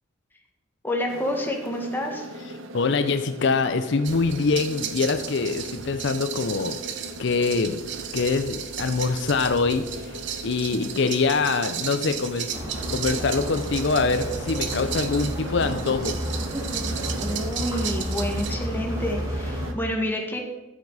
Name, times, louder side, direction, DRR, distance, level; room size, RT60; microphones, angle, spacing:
voice 1, 0.8-2.3 10.6-10.9 14.7-15.0 17.2-20.4, left 1 dB, 10° left, 1 dB, 1.7 m, -29 dB
sound 1, 1.1-19.7, right 1 dB, 85° right, 1.1 m, -40 dB
voice 2, 2.7-6.8 7.2-7.8 8.1-10.1 10.4-12.5 12.9-16.2, left 4 dB, 65° left, 9 dB, 0.6 m, -24 dB
sound 2, 4.0-18.5, right 8 dB, 65° right, 0.9 m, -35 dB
sound 3, 12.5-19.7, equal, 15° right, 3.5 m, -31 dB
13.5 x 7.2 x 4.9 m, 1.1 s
head